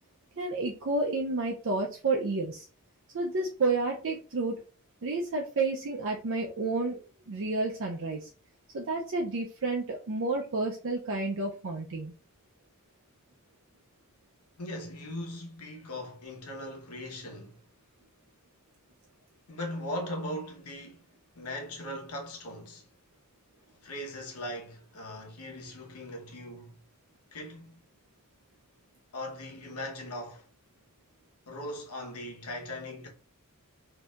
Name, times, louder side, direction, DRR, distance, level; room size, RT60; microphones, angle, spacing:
voice 1, 0.4-2.7 3.1-4.6 5.0-7.0 7.3-8.3 8.7-12.1, right 3 dB, 60° right, 0.5 m, -30 dB
voice 2, 14.6-17.6 19.5-21.1 21.4-22.9 23.8-26.8 27.3-27.8 29.1-30.5 31.5-33.1, left 1 dB, 90° left, 1.1 m, -39 dB
4.3 x 2.8 x 2.4 m
head